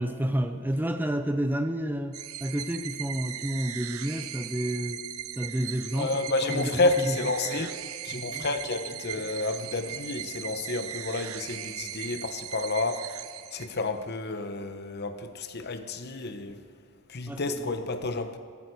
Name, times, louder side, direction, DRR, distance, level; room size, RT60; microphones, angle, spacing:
voice 1, 0.0-5.0 5.4-6.1 6.5-7.7 8.1-8.5 17.3-17.7, right 1 dB, 10° right, 8 dB, 0.5 m, -30 dB
sound 1, 2.1-14.0, right 11 dB, 75° right, 0.7 m, -38 dB
voice 2, 5.9-7.7 8.0-13.1 13.5-16.6 17.1-18.4, left 2 dB, 50° left, 8 dB, 1.0 m, -30 dB
17.0 x 14.5 x 4.7 m, 2.2 s
head